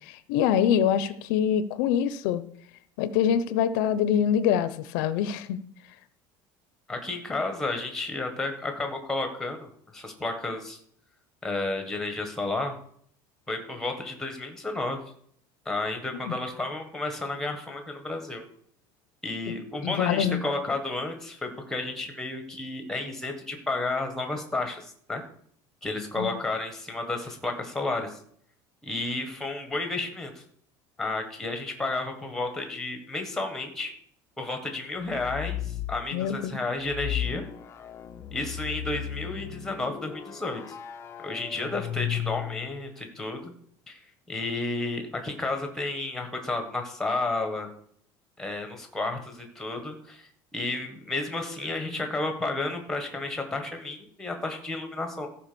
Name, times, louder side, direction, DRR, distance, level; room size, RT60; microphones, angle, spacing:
voice 1, 0.1-2.4 3.0-5.6 16.3-16.4 19.8-20.4 26.2-26.3 36.1-36.6, left 9 dB, 80° left, 14 dB, 0.8 m, -25 dB
voice 2, 6.9-10.8 11.4-12.8 13.5-15.0 15.6-18.4 19.2-25.2 25.8-28.2 28.8-30.4 31.0-33.9 34.4-37.4 38.3-40.7 41.2-43.5 43.9-44.0 44.3-47.7 48.4-55.3, left 2 dB, 5° left, 5 dB, 1.5 m, -32 dB
sound 1, 35.1-36.0 36.8-42.9, left 11 dB, 25° left, 0.7 m, -35 dB
14.0 x 5.0 x 7.0 m, 0.63 s
cardioid pair, 175°, 10 cm